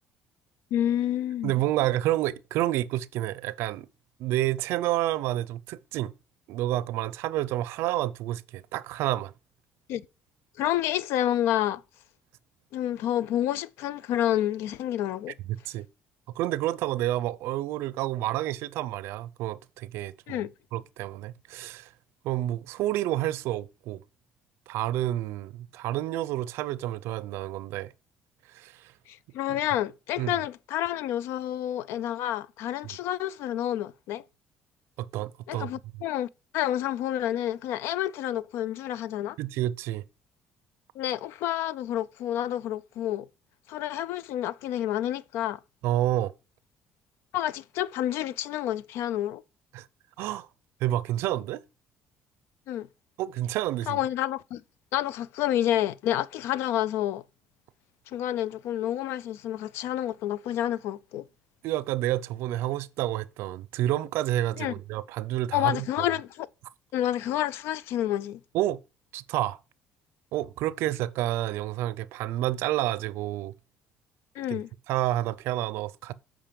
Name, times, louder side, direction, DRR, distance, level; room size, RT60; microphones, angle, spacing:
voice 1, 0.7-1.6 9.9-10.1 10.6-11.8 12.7-15.3 20.3-20.5 29.1-34.2 35.5-39.4 41.0-43.3 43.7-45.6 47.3-49.4 52.7-52.9 53.9-54.6 54.9-57.2 58.1-61.3 64.6-64.7 65.5-66.5 66.9-68.4 74.4-74.7, left 12 dB, 80° left, 0.4 m, -29 dB
voice 2, 1.4-3.9 4.2-6.1 6.5-9.3 15.7-15.9 16.3-20.4 20.7-21.9 22.2-24.0 24.7-27.9 28.5-28.9 30.2-30.4 35.0-35.7 39.4-40.0 45.8-46.3 49.7-49.9 50.2-50.5 50.8-51.6 53.2-54.0 61.6-65.8 68.5-68.8 69.1-69.6 70.3-73.5 74.5-74.6 74.9-76.1, right 14 dB, 80° right, 0.5 m, -29 dB
7.4 x 4.9 x 5.2 m
cardioid pair, 105°, 4 cm